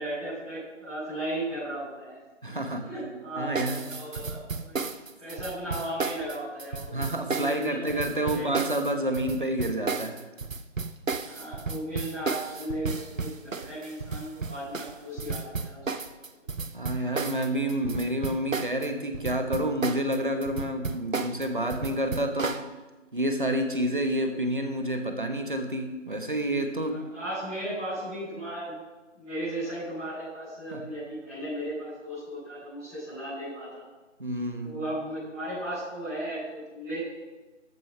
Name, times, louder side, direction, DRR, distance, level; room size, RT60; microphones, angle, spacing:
voice 1, 0.0-2.1 2.8-4.8 5.2-7.8 8.2-8.6 11.2-16.1 26.8-28.8 29.1-33.8 34.6-37.0, right 1 dB, 5° right, -20 dB, 2.9 m, -36 dB
voice 2, 2.4-2.9 3.4-3.8 4.8-4.9 6.9-10.2 16.7-22.7 23.1-27.0 30.7-30.8 34.2-34.7, right 1 dB, 40° right, 6 dB, 1.3 m, -29 dB
sound 1, 3.5-18.9 19.1-22.7, right 4 dB, 90° right, 1.0 m, -33 dB
13.5 x 6.3 x 5.7 m, 1.2 s
figure-of-eight pair, 175°, 38 cm